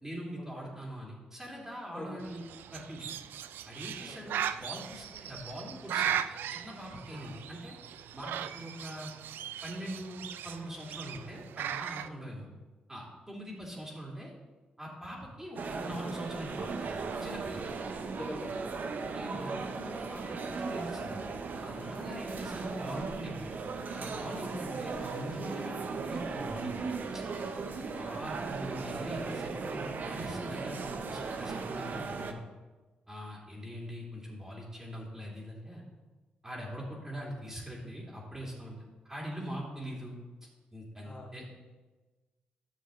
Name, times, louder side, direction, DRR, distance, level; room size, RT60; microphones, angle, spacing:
voice 1, 0.0-2.4 2.7-3.1 3.6-6.2 6.5-7.7 8.1-9.1 9.6-12.5 12.9-14.3 14.8-16.9 17.2-17.6 19.1-21.2 21.6-23.5 23.9-25.7 26.0-26.8 27.1-27.2 27.9-32.4 33.1-35.8 36.4-38.7 39.0-40.1 40.7-41.6, equal, 15° right, -4 dB, 2.8 m, -42 dB
Bird, 2.2-12.1, right 9 dB, 80° right, 0.3 m, -38 dB
voice 2, 4.1-4.4 17.9-18.8 22.2-22.4 41.0-41.3, left 1 dB, 30° left, -1 dB, 3.2 m, -45 dB
sound 1, 15.6-32.3, right 4 dB, 60° right, 0.7 m, -37 dB
10.0 x 6.4 x 3.8 m, 1.2 s
supercardioid pair, 55°, 3 cm